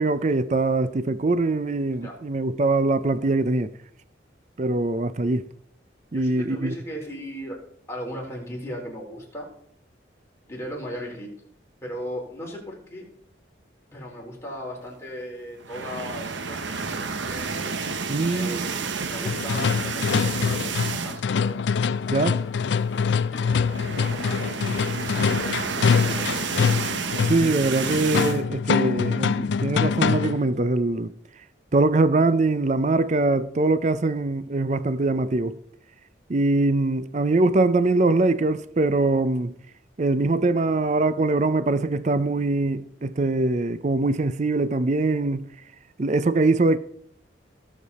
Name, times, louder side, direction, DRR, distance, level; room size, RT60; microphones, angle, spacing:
voice 1, 0.0-3.7 4.6-5.5 6.1-6.7 18.1-18.7 22.1-22.4 27.3-31.1 31.7-35.6 36.3-39.5 40.0-45.5 46.0-46.8, right 2 dB, 40° right, 0.5 m, -22 dB
voice 2, 6.1-7.6 7.9-9.5 10.5-11.3 11.8-13.0 13.9-17.8 18.2-22.3 22.9-24.5 25.2-26.4, equal, 15° left, 3.9 m, -37 dB
sound 1, 15.6-21.4 21.8-22.0 22.2-22.3 23.4-28.4, right 5 dB, 80° right, 0.9 m, -30 dB
sound 2, 19.3-30.5, left 6 dB, 70° left, 0.4 m, -24 dB
18.0 x 7.3 x 4.1 m
head